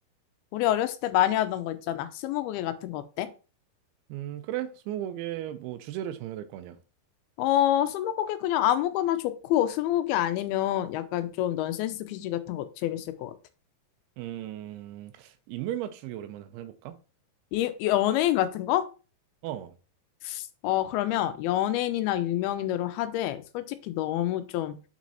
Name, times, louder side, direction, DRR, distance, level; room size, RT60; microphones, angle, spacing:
voice 1, 0.5-3.3 7.4-13.3 17.5-18.9 20.2-24.7, left 13 dB, 90° left, 2.5 m, -27 dB
voice 2, 4.1-6.8 14.2-17.0 19.4-19.7, right 12 dB, 90° right, 2.5 m, -36 dB
6.4 x 6.0 x 2.8 m
omnidirectional pair, 4.4 m